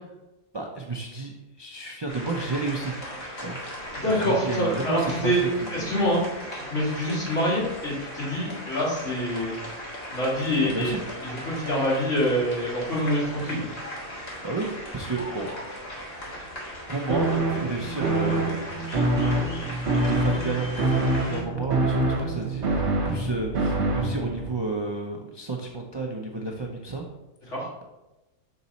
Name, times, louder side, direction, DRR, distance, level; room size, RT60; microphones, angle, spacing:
voice 1, 0.5-1.3 1.6-2.9 3.4-3.6 4.1-6.0 10.6-11.0 14.4-15.5 16.9-18.5 19.2-19.6 19.8-27.0 27.4-27.5, right 3 dB, 35° right, 0 dB, 0.4 m, -32 dB
sound 1, 2.1-21.4, equal, 50° left, 1.7 m, -38 dB
voice 2, 3.9-6.2 6.5-9.6 10.1-10.9 11.2-13.6 27.5-27.7, equal, 70° left, -7 dB, 2.9 m, -26 dB
sound 2, 17.1-24.5, right 2 dB, 60° right, 1.2 m, -25 dB
6.6 x 4.0 x 4.2 m, 1.0 s
omnidirectional pair, 1.3 m